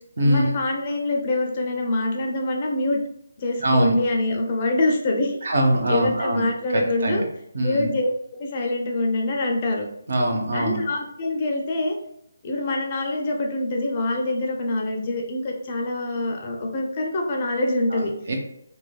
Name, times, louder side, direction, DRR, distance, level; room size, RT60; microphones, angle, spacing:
voice 1, 0.2-3.0 3.4-5.4 5.9-7.2 7.6-9.8 10.5-11.9 12.4-18.1, left 2 dB, 35° left, 1 dB, 0.4 m, -25 dB
voice 2, 3.6-3.9 5.4-6.4 6.7-7.2 7.5-7.9 10.1-10.8 17.9-18.4, right 1 dB, 55° right, 2 dB, 0.7 m, -22 dB
3.2 x 2.2 x 2.2 m, 0.77 s
figure-of-eight pair, 155°, 0 cm